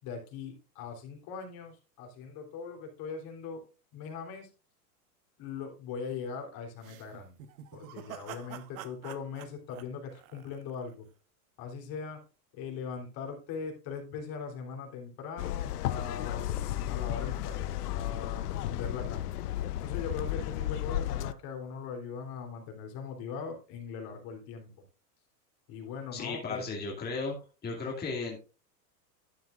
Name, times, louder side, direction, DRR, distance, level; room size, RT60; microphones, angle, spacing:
voice 1, 0.0-3.6 3.9-4.5 5.4-7.3 7.7-11.1 11.6-12.2 12.5-19.3 19.8-24.7 25.7-26.6, left 6 dB, 45° left, 3 dB, 3.4 m, -40 dB
sound 1, 6.8-10.9, right 11 dB, 60° right, 1.3 m, -47 dB
sound 2, 15.4-21.3, left 12 dB, 70° left, 0.8 m, -33 dB
voice 2, 26.1-27.4 27.6-28.4, left 4 dB, 20° left, -2 dB, 2.5 m, -35 dB
12.0 x 9.2 x 2.5 m, 0.33 s
hypercardioid pair, 105°, 47 cm